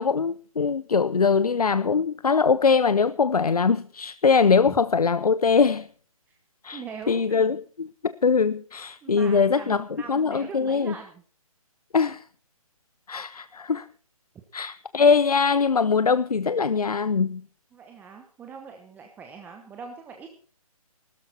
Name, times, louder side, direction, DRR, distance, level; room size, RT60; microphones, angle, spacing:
voice 1, 0.0-5.9 6.6-10.9 11.9-12.2 13.1-13.9 14.5-17.4, left 5 dB, 90° left, 0.6 m, -22 dB
voice 2, 6.7-7.2 9.0-11.2 17.7-20.3, right 6 dB, 10° right, 0.9 m, -41 dB
16.5 x 13.0 x 4.3 m
figure-of-eight pair, 145°, 19 cm